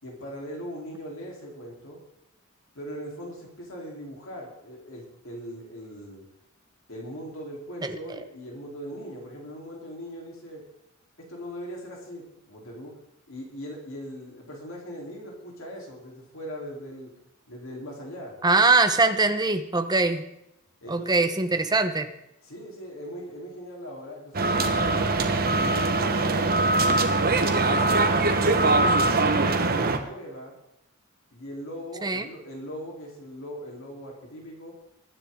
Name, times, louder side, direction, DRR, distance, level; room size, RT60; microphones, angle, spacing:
voice 1, 0.0-2.0 2.7-6.2 6.9-10.6 11.3-12.9 13.3-17.1 17.5-18.3 20.8-21.3 22.4-25.1 25.5-27.3 27.9-30.5 31.3-34.7, equal, 65° left, -1 dB, 3.6 m, -40 dB
voice 2, 7.8-8.2 18.4-20.2 20.9-22.1 32.0-32.2, right 3 dB, 20° right, 8 dB, 0.9 m, -22 dB
sound 1, 24.3-30.0, right 2 dB, 45° right, 1.2 m, -22 dB
22.0 x 10.0 x 3.8 m, 0.84 s
head